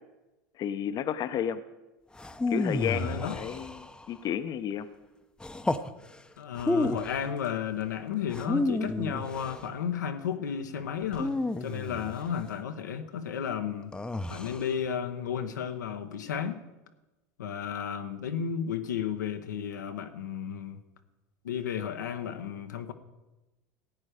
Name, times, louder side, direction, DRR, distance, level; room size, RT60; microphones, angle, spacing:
voice 1, 0.6-1.6 2.5-4.9, left 9 dB, 45° left, 0.8 m, -32 dB
sound 1, 2.2-4.2 5.4-5.9 6.6-7.2 8.3-9.6 11.1-12.3 13.9-14.7, left 2 dB, 10° left, 0.7 m, -31 dB
voice 2, 2.9-3.4 6.4-14.0 14.3-16.6 17.4-20.8 21.4-22.9, left 8 dB, 90° left, 1.0 m, -33 dB
15.5 x 8.8 x 5.0 m
hypercardioid pair, 90°, 9 cm